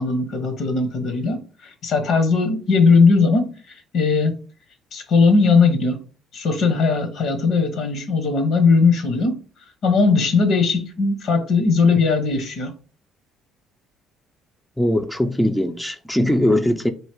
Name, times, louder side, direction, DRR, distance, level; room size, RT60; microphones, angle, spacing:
voice 1, 0.0-3.5 3.9-4.4 4.9-6.0 6.3-9.4 9.8-12.7, left 4 dB, 65° left, 1.0 m, -18 dB
voice 2, 14.8-16.9, left 1 dB, 5° left, 0.5 m, -20 dB
3.2 x 2.8 x 4.5 m
hypercardioid pair, 60°, 0 cm